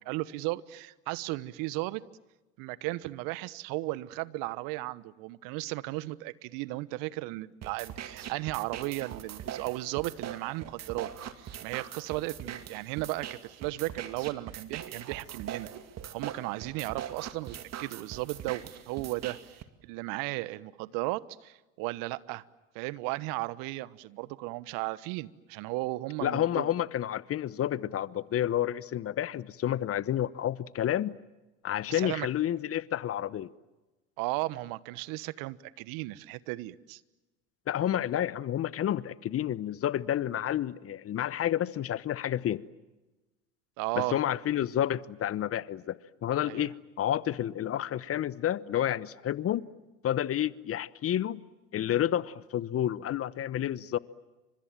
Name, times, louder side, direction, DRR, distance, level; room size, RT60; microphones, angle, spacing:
voice 1, 0.0-2.0 2.6-11.1 11.3-15.7 16.1-19.4 19.8-22.4 22.7-26.7 31.9-32.3 34.2-37.0 43.8-44.2 46.5-46.7, right 20 dB, 60° right, 1.2 m, -35 dB
sound 1, 7.6-19.6, right 9 dB, 45° right, 2.5 m, -42 dB
voice 2, 26.2-31.1 31.6-33.5 37.7-42.6 44.0-49.6 50.0-51.4 51.7-54.0, left 11 dB, 35° left, 1.0 m, -30 dB
30.0 x 26.0 x 7.5 m
hypercardioid pair, 75°, 38 cm